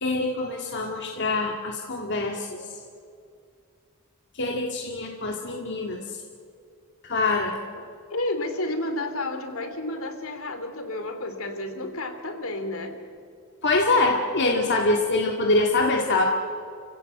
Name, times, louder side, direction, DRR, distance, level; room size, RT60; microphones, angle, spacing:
voice 1, 0.0-2.6 4.4-6.0 7.0-7.6 13.6-16.2, left 2 dB, 55° left, 0 dB, 1.9 m, -24 dB
voice 2, 8.1-13.0, left 2 dB, 75° left, 7 dB, 2.8 m, -31 dB
29.5 x 16.0 x 7.9 m, 2.4 s
head